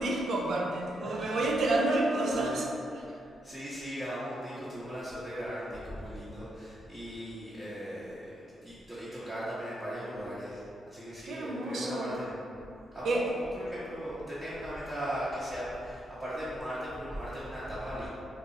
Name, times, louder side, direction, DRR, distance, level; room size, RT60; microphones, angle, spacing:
voice 1, 0.0-2.6 11.2-12.2 13.0-13.2, right 2 dB, 70° right, -1 dB, 0.5 m, -29 dB
voice 2, 1.0-1.7 2.2-2.7 3.0-12.4 12.9-18.1, equal, 15° right, -12 dB, 0.9 m, -38 dB
2.6 x 2.3 x 3.9 m, 2.6 s
cardioid pair, 70°, 0 cm